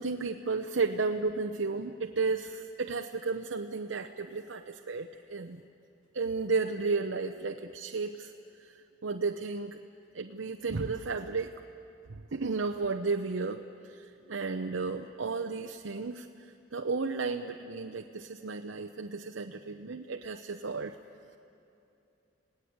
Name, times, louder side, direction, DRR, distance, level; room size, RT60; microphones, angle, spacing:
voice 1, 0.0-5.6 6.1-8.3 8.6-8.7 9.0-9.8 10.1-11.5 12.1-21.0, right 4 dB, 85° right, 4 dB, 0.8 m, -33 dB
29.0 x 18.0 x 8.7 m, 2.7 s
head